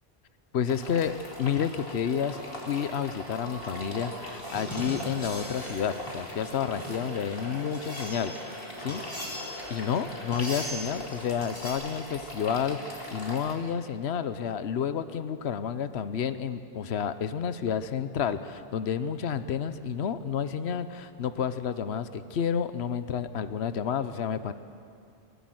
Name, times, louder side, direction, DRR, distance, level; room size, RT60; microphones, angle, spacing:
voice 1, 0.5-8.3 8.8-9.0 9.7-24.5, left 7 dB, 80° left, 12 dB, 1.1 m, -30 dB
sound 1, 0.7-13.5, equal, 60° left, 2.7 m, -41 dB
Singing / Musical instrument, 2.2-11.1, equal, 40° right, 5.1 m, -45 dB
sound 2, 4.3-8.4 8.9-9.7 10.3-10.9 11.4-11.7, equal, 20° left, 6.9 m, -40 dB
20.5 x 18.5 x 7.8 m, 2.3 s
omnidirectional pair, 1.1 m